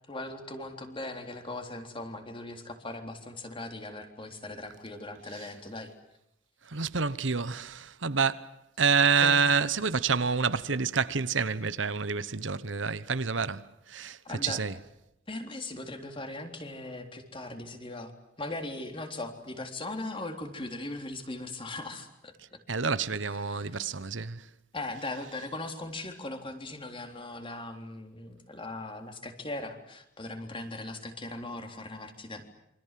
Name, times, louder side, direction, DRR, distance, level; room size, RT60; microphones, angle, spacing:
voice 1, 0.1-5.9 9.2-9.4 14.2-14.6 15.3-18.1 18.4-22.6 23.5-23.9 24.7-32.4, left 2 dB, 30° left, 3.7 m, -39 dB
voice 2, 6.7-14.7 22.7-24.5, right 5 dB, 75° right, 1.1 m, -28 dB
28.0 x 25.5 x 7.6 m
head